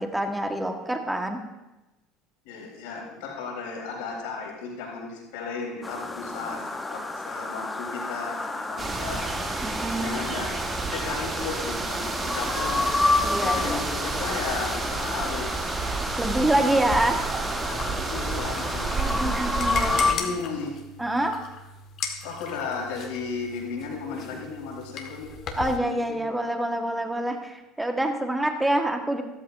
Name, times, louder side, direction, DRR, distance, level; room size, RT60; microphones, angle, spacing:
voice 1, 0.0-1.4 9.6-10.2 13.2-13.8 16.2-17.2 19.0-20.0 21.0-21.4 25.6-29.2, right 1 dB, 10° right, 4 dB, 1.5 m, -26 dB
voice 2, 2.4-9.3 9.7-10.5 10.9-12.9 13.4-15.7 17.7-19.2 19.8-20.7 22.2-26.2, left 5 dB, 75° left, -2 dB, 3.9 m, -35 dB
sound 1, 5.8-20.1, left 3 dB, 15° left, 1.0 m, -30 dB
sound 2, 8.8-20.1, right 4 dB, 30° right, 1.5 m, -31 dB
sound 3, 16.8-25.8, left 5 dB, 50° left, 1.8 m, -38 dB
14.0 x 13.5 x 2.7 m, 1.0 s
hypercardioid pair, 75°, 0 cm